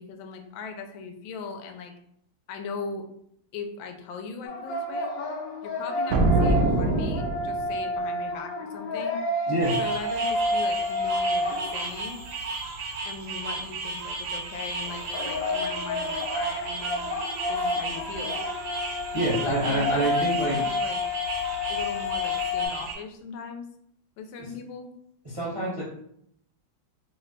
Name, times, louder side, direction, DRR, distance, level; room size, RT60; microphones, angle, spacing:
voice 1, 0.0-1.9 2.5-3.1 3.5-5.1 5.6-9.2 9.8-12.2 13.0-17.1 17.5-18.4 19.4-21.0 21.7-23.7 24.2-24.9, left 5 dB, 90° left, 5 dB, 1.3 m, -39 dB
sound 1, 4.5-12.3 14.8-22.7, left 2 dB, 70° left, 0.9 m, -30 dB
sound 2, 6.1-7.8, right 2 dB, 85° right, 0.7 m, -23 dB
voice 2, 9.5-9.8 19.1-20.6 24.4-24.5 25.2-25.8, right 1 dB, 35° right, -6 dB, 0.5 m, -26 dB
sound 3, 9.6-22.9, right 3 dB, 65° right, 1.2 m, -34 dB
3.2 x 2.1 x 3.8 m, 0.72 s
omnidirectional pair, 2.0 m